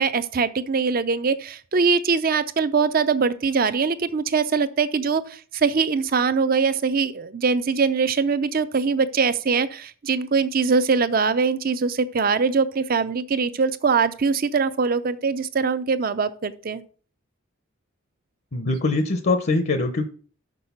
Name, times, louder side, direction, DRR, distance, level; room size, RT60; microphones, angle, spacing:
voice 1, 0.0-16.8, right 5 dB, 45° right, 13 dB, 0.5 m, -22 dB
voice 2, 18.5-20.1, left 3 dB, 50° left, 8 dB, 0.7 m, -22 dB
6.5 x 6.1 x 5.5 m, 0.42 s
head